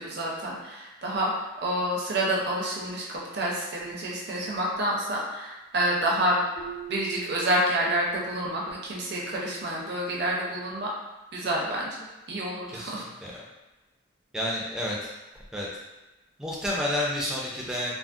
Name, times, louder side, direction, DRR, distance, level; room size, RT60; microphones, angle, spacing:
voice 1, 0.0-6.4 6.9-10.9 11.3-12.0 12.3-13.1, right 1 dB, 55° right, -3 dB, 0.6 m, -28 dB
Keyboard (musical), 6.5-9.3, right 11 dB, 70° left, 1.3 m, -43 dB
voice 2, 12.7-13.4 14.3-15.1 15.5-15.7 16.4-18.0, left 1 dB, 5° right, -5 dB, 0.4 m, -30 dB
3.4 x 2.0 x 2.5 m, 1.1 s
head